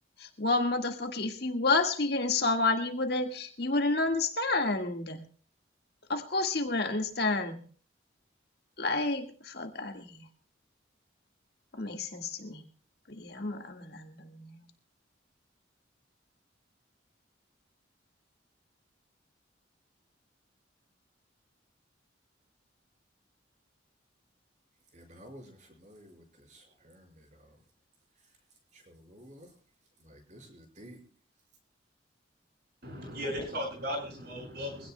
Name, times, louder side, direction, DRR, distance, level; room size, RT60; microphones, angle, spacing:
voice 1, 0.2-5.3 6.1-7.6 8.8-10.3 11.7-12.7 13.1-14.6, left 3 dB, 55° left, 4 dB, 1.8 m, -30 dB
voice 2, 24.9-27.6 28.2-28.3 28.7-29.5 30.0-31.0, equal, 40° right, 2 dB, 5.0 m, -53 dB
voice 3, 32.8-34.9, equal, 55° right, 1 dB, 6.9 m, -36 dB
23.5 x 17.0 x 2.2 m, 0.43 s
head